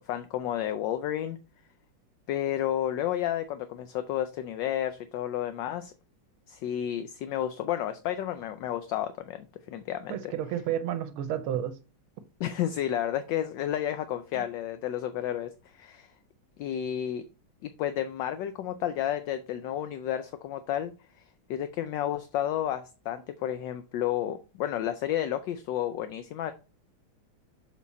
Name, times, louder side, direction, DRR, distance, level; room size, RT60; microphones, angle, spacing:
voice 1, 0.1-1.4 2.3-5.9 6.5-10.3 12.4-16.1 16.6-17.2 17.6-20.9 21.5-26.5, left 11 dB, 75° left, 1.1 m, -31 dB
voice 2, 10.1-11.7, right 10 dB, 85° right, 1.6 m, -31 dB
7.2 x 4.2 x 4.1 m
omnidirectional pair, 2.3 m